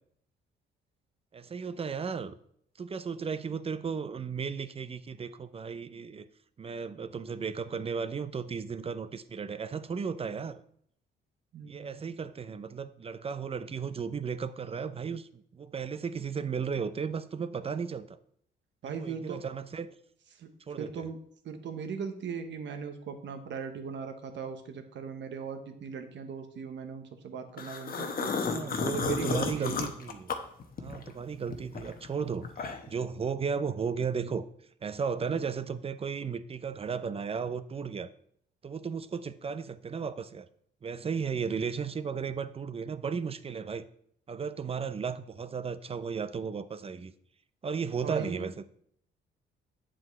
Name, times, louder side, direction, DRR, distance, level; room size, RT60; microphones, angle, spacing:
voice 1, 1.3-2.4 2.8-6.3 6.6-10.6 11.6-18.2 18.8-19.9 20.7-21.1 28.4-30.3 30.8-34.4 34.8-38.1 38.6-40.5 40.8-43.9 44.3-47.1 47.6-48.6, right 6 dB, 30° right, 13 dB, 0.5 m, -35 dB
voice 2, 11.5-12.0 18.8-19.4 20.4-20.5 20.8-21.2 21.4-28.3 28.8-29.8 48.0-48.5, right 6 dB, 65° right, 7 dB, 1.2 m, -38 dB
sound 1, 27.6-31.1 31.5-33.0, left 5 dB, 45° left, 1.1 m, -33 dB
8.6 x 7.6 x 3.3 m, 0.66 s
cardioid pair, 90°, 20 cm